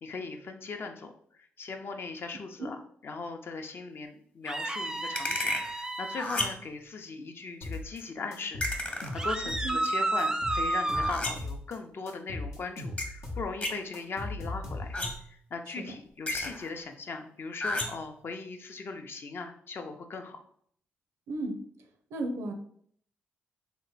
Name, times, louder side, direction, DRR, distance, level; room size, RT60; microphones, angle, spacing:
voice 1, 0.0-2.8 3.0-14.9 15.3-20.4, left 4 dB, 55° left, 5 dB, 0.5 m, -39 dB
sound 1, 4.5-6.3 9.2-11.2, right 2 dB, 15° right, 0.3 m, -31 dB
sound 2, 5.1-5.7 6.2-6.7 8.6-9.3 10.9-11.6 13.0-13.1 13.6-13.8 14.9-15.4 16.3-16.7 17.6-18.1, left 2 dB, 30° left, 0.9 m, -32 dB
sound 3, 7.6-8.0 8.3-9.9 10.2-11.8 12.1-15.1, left 2 dB, 85° left, 0.7 m, -38 dB
voice 2, 22.1-22.5, right 2 dB, 80° right, 5 dB, 0.5 m, -34 dB
2.9 x 2.2 x 4.0 m, 0.63 s
supercardioid pair, 60°, 5 cm